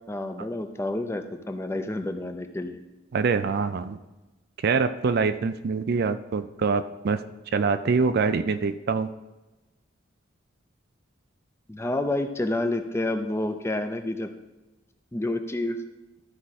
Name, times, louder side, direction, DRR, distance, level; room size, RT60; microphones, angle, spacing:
voice 1, 0.1-2.8 11.7-14.3 15.1-15.8, left 1 dB, 15° left, 7 dB, 0.5 m, -29 dB
voice 2, 3.1-4.0 4.6-7.2 7.5-9.1, right 5 dB, 50° right, 11 dB, 0.4 m, -24 dB
12.5 x 4.8 x 4.1 m, 1.1 s
head